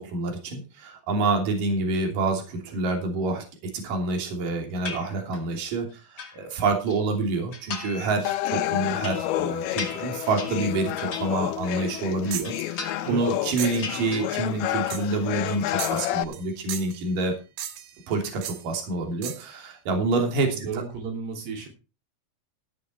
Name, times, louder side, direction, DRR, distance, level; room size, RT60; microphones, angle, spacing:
voice 1, 0.0-17.4 18.1-20.6, right 3 dB, 60° right, 3 dB, 4.5 m, -27 dB
sound 1, 4.9-5.6 5.9-7.0 7.5-8.2 8.5-12.0 12.3-13.4 13.7-14.7 15.0-15.6, left 4 dB, 30° left, 2.4 m, -39 dB
sound 2, 8.3-16.2, left 14 dB, 80° left, 2.7 m, -29 dB
voice 2, 10.1-10.5 13.0-13.2 20.5-21.7, right 5 dB, 90° right, 3 dB, 5.2 m, -34 dB
sound 3, 12.3-12.6 13.6-13.9 14.9-15.2 15.8-16.4 16.7-17.0 17.6-18.0 18.4-18.6 19.2-19.5, right 10 dB, 75° right, 3.1 m, -35 dB
14.5 x 8.6 x 4.5 m, 0.32 s
omnidirectional pair, 4.5 m